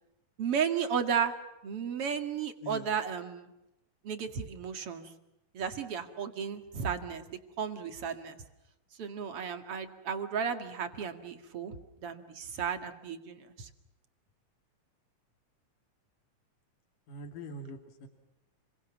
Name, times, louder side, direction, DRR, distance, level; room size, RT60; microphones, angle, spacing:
voice 1, 0.4-1.4 1.6-3.5 4.0-5.1 5.5-7.2 7.6-8.4 9.0-11.7 12.0-13.7, right 7 dB, 50° right, 8 dB, 2.7 m, -34 dB
voice 2, 17.1-18.1, equal, 80° left, 5 dB, 4.2 m, -43 dB
30.0 x 23.5 x 7.2 m, 0.93 s
omnidirectional pair, 3.7 m